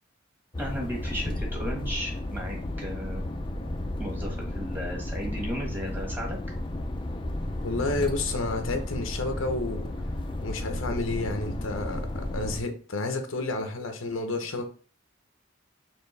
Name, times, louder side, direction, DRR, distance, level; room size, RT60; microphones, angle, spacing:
sound 1, 0.5-12.6, left 1 dB, 25° left, 0.5 m, -33 dB
voice 1, 0.6-3.3 4.0-6.4, equal, 10° right, 1.5 m, -35 dB
voice 2, 7.6-9.9 10.4-14.7, left 2 dB, 90° left, 0.8 m, -30 dB
4.4 x 3.2 x 3.3 m
head